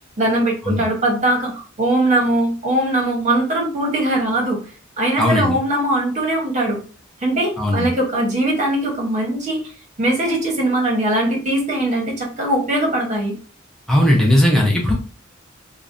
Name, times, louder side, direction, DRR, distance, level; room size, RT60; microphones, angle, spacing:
voice 1, 0.2-4.6 5.0-6.8 7.2-9.7 10.0-13.3, right 1 dB, 35° right, -1 dB, 0.8 m, -20 dB
voice 2, 5.2-5.6 7.6-7.9 13.9-14.9, left 1 dB, ahead, -3 dB, 0.4 m, -17 dB
2.5 x 2.0 x 2.4 m, 0.37 s
head